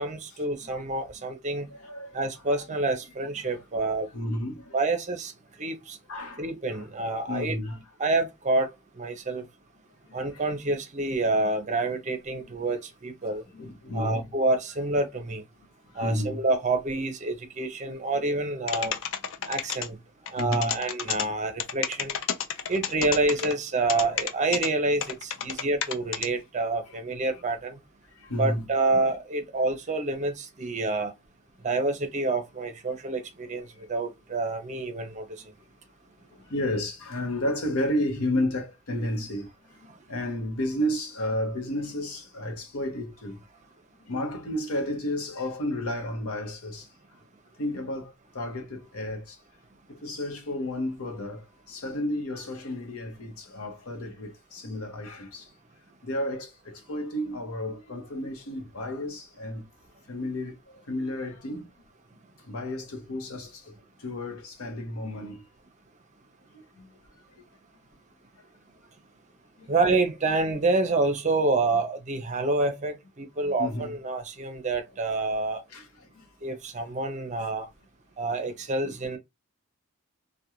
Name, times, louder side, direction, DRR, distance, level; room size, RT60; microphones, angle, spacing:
voice 1, 0.0-1.7 2.1-4.1 4.7-5.3 5.6-6.0 6.4-7.6 8.0-8.7 9.0-9.4 10.1-13.4 13.9-15.4 16.0-19.0 19.5-20.0 20.3-22.1 22.7-27.8 28.4-31.1 31.6-35.2 69.7-75.6 76.4-77.7 78.2-79.2, right 2 dB, 35° right, 0.5 m, -27 dB
voice 2, 1.6-2.2 2.5-2.6 3.4-3.5 4.1-4.8 6.1-6.9 7.3-7.8 10.1-10.5 12.3-12.8 13.5-14.2 15.9-16.4 17.9-18.2 18.8-18.9 20.4-20.8 25.4-25.5 28.2-28.6 36.3-39.5 39.8-43.4 44.0-46.9 47.6-49.4 49.9-55.5 56.0-59.6 60.1-61.7 62.4-65.4 66.5-66.9 69.6-69.7 73.4-73.9 75.7-76.2 78.8-78.9, left 1 dB, 90° left, 0.8 m, -32 dB
sound 1, 18.7-19.9 20.3-21.2 21.6-23.5 23.9-24.7 25.0-26.3, left 8 dB, 60° left, 0.4 m, -30 dB
2.4 x 2.2 x 2.9 m
head